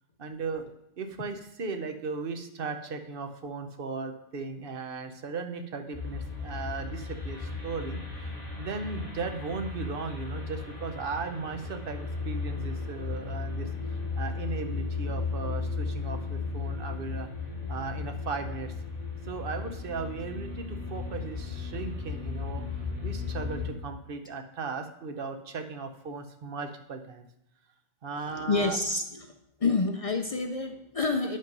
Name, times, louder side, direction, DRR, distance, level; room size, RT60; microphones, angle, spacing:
voice 1, 0.2-0.6 1.0-17.3 17.7-18.7 19.2-27.3 28.0-28.8, right 4 dB, 55° right, 7 dB, 0.9 m, -37 dB
sound 1, 5.9-23.7, left 4 dB, 35° left, 2.4 m, -35 dB
voice 2, 28.2-29.3 29.6-31.4, left 3 dB, 50° left, 5 dB, 0.4 m, -28 dB
9.0 x 5.3 x 5.3 m, 0.81 s
omnidirectional pair, 1.2 m